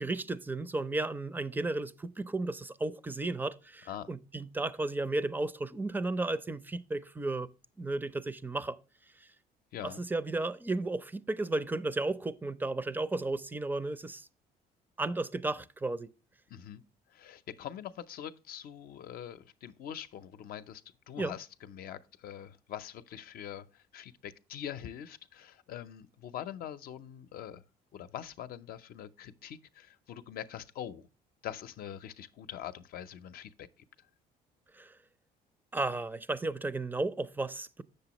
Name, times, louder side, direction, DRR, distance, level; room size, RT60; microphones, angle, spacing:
voice 1, 0.0-7.5 7.8-8.8 9.2-9.3 9.8-14.3 15.0-16.1 21.2-21.3 34.7-34.9 35.7-37.8, right 2 dB, 10° right, 0.4 m, -34 dB
voice 2, 9.7-10.0 16.5-16.8 17.1-20.8 21.1-27.6 27.9-31.1 31.4-33.7, left 10 dB, 60° left, 0.6 m, -43 dB
7.6 x 6.6 x 2.9 m
cardioid pair, 110°, 17 cm